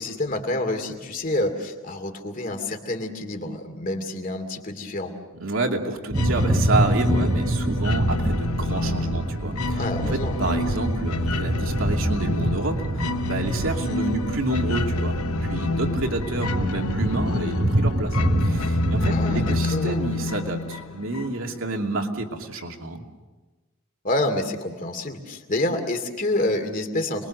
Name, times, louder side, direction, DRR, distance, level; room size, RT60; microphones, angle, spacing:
voice 1, 0.0-5.1 9.8-10.4 19.1-20.0 24.0-27.3, left 1 dB, 40° left, 5 dB, 2.5 m, -28 dB
voice 2, 5.4-9.8 10.1-15.2 15.4-18.2 18.4-23.0, right 2 dB, 70° right, 2 dB, 2.7 m, -29 dB
sound 1, 6.1-21.6, left 2 dB, 90° left, 0.9 m, -29 dB
sound 2, 6.1-19.6, right 1 dB, 30° right, 1.0 m, -26 dB
28.5 x 22.0 x 6.6 m, 1.2 s
head